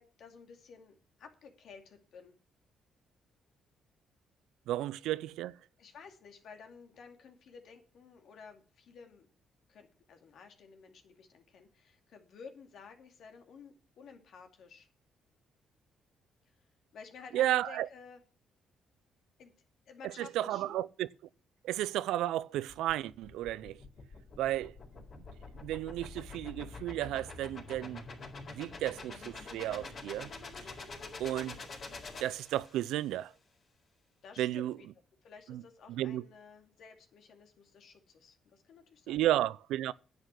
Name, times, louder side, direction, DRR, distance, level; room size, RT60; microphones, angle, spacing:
voice 1, 0.0-2.3 5.8-9.3 9.7-14.9 16.9-18.2 19.4-19.5 19.9-20.9 34.2-34.9 35.2-39.2, left 5 dB, 70° left, 2.5 m, -53 dB
voice 2, 4.7-5.6 17.3-17.9 20.0-21.1 21.6-23.8 24.4-24.7 25.2-25.3 25.6-28.0 28.5-30.3 31.2-31.6 32.2-33.3 34.4-34.8 35.5-35.6 35.9-36.3 39.1-39.9, right 13 dB, 90° right, 0.4 m, -33 dB
sound 1, 22.7-33.0, left 3 dB, 50° left, 4.2 m, -46 dB
10.5 x 8.1 x 6.0 m
cardioid pair, 90°, 0 cm